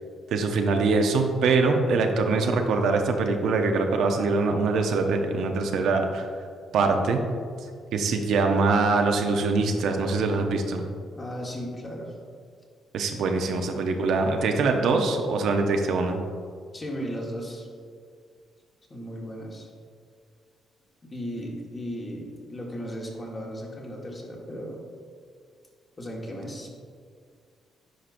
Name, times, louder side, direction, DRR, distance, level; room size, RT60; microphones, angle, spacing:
voice 1, 0.3-6.3 6.7-7.2 7.9-10.9 12.9-16.2, right 3 dB, 75° right, 4 dB, 0.6 m, -23 dB
voice 2, 11.1-12.1 16.7-17.7 18.9-19.7 21.0-24.8 26.0-26.7, equal, 30° left, -1 dB, 1.5 m, -36 dB
10.0 x 5.1 x 2.6 m, 2.1 s
cardioid pair, 90°, 0 cm